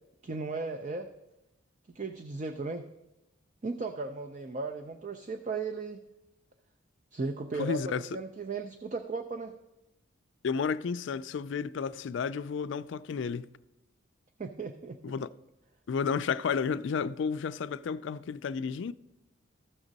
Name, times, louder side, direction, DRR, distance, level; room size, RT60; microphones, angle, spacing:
voice 1, 0.2-1.1 1.9-2.9 3.6-6.0 7.1-9.5 14.4-15.0, right 3 dB, 35° right, 0.4 m, -36 dB
voice 2, 7.6-8.0 10.4-13.5 15.0-15.3 15.9-18.9, left 6 dB, 60° left, 0.3 m, -32 dB
14.5 x 6.2 x 4.0 m
head